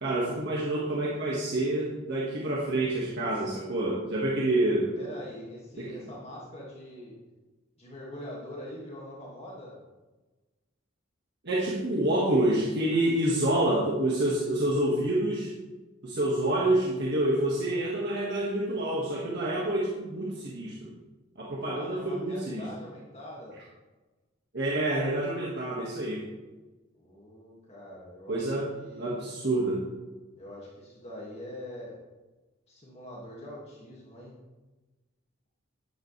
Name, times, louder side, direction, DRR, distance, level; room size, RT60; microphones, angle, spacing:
voice 1, 0.0-4.9 5.8-5.9 11.4-15.5 16.0-20.9 21.4-22.7 24.5-26.3 28.3-28.7 29.0-29.8, right 1 dB, 60° right, -4 dB, 1.8 m, -27 dB
voice 2, 5.0-7.2 7.8-9.8 21.6-23.6 27.0-28.5 28.7-29.2 30.4-32.0 32.7-34.4, left 1 dB, 35° left, -4 dB, 2.2 m, -43 dB
11.5 x 10.0 x 3.4 m, 1.2 s
head